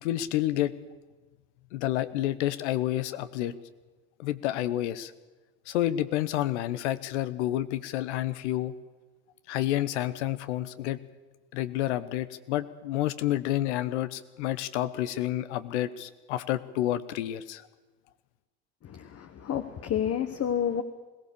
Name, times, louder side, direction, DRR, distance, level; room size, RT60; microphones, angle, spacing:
voice 1, 0.0-0.7 1.7-3.5 4.2-5.1 5.7-8.7 9.5-11.0 11.5-17.6, left 13 dB, 70° left, 14 dB, 1.1 m, -29 dB
voice 2, 19.1-20.8, left 9 dB, 40° left, 9 dB, 1.4 m, -29 dB
21.5 x 18.0 x 7.0 m, 1.2 s
hypercardioid pair, 65°, 36 cm